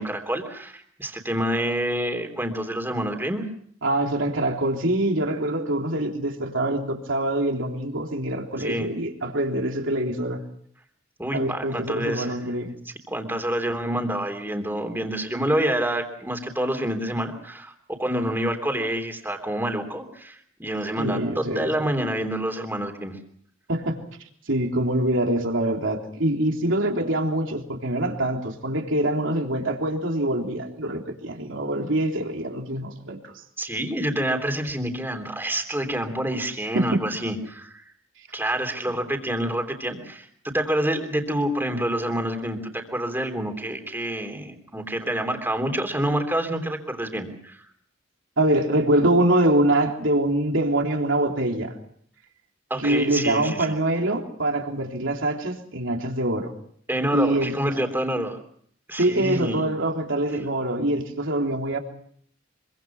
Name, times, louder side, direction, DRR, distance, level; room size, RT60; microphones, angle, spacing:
voice 1, 0.0-3.4 8.6-8.9 11.2-12.3 12.8-23.2 33.6-37.8 38.3-47.6 52.7-53.8 56.9-58.4 58.9-59.6, right 1 dB, 10° right, 5 dB, 3.4 m, -27 dB
voice 2, 3.8-10.4 11.3-12.7 21.0-21.7 23.7-24.0 24.5-33.3 36.7-37.0 48.4-51.7 52.8-56.5 57.1-57.5 59.0-61.8, right 1 dB, 70° right, 2 dB, 3.5 m, -24 dB
25.5 x 24.0 x 6.0 m, 0.63 s
head